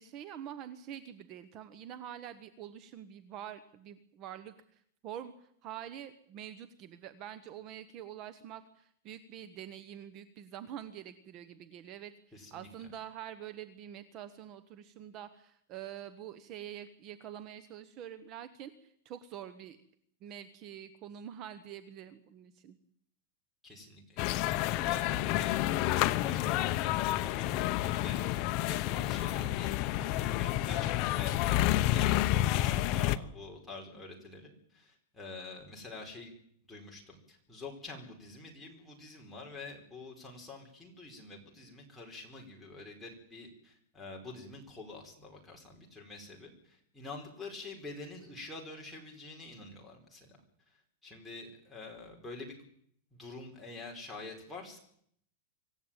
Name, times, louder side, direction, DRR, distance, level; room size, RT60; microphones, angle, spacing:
voice 1, 0.0-19.8 20.2-22.8, right 10 dB, 35° right, 12 dB, 1.3 m, -46 dB
voice 2, 12.3-12.7 23.6-28.2 28.6-36.3 36.7-50.4 51.0-52.5 53.1-54.8, left 3 dB, 5° left, -1 dB, 4.8 m, -47 dB
sound 1, 24.2-33.2, left 14 dB, 40° left, 0.9 m, -29 dB
25.0 x 14.5 x 9.0 m, 0.68 s
supercardioid pair, 160°, 0 cm